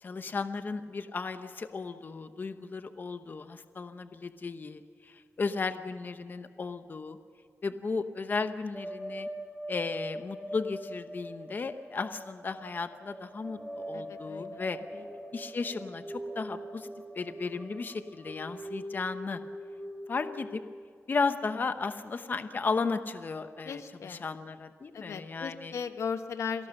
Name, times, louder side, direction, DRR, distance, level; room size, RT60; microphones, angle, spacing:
voice 1, 0.0-7.2 7.6-9.3 9.7-14.8 15.3-16.9 17.1-19.4 20.1-20.6 21.1-25.7, left 4 dB, 40° left, 9 dB, 0.9 m, -35 dB
sound 1, 8.7-20.5, equal, 5° right, 2.7 m, -42 dB
voice 2, 13.9-15.0 23.6-24.2 24.9-26.7, left 6 dB, 75° left, 9 dB, 1.2 m, -37 dB
27.5 x 18.0 x 6.5 m, 2.1 s
wide cardioid pair, 115°, 5 cm